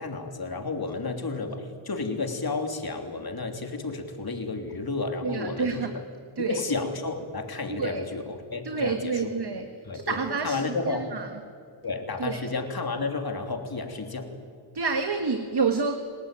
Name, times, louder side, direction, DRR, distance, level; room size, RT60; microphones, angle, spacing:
voice 1, 0.0-5.9 6.4-9.2 9.8-10.2 10.4-11.1 11.8-14.3, left 3 dB, 45° left, 5 dB, 3.3 m, -32 dB
voice 2, 5.2-6.0 6.4-6.6 7.7-8.0 8.6-11.3 12.2-12.5 14.7-16.0, right 4 dB, 50° right, 6 dB, 1.8 m, -28 dB
29.5 x 19.0 x 9.1 m, 2.2 s
wide cardioid pair, 70°, 49 cm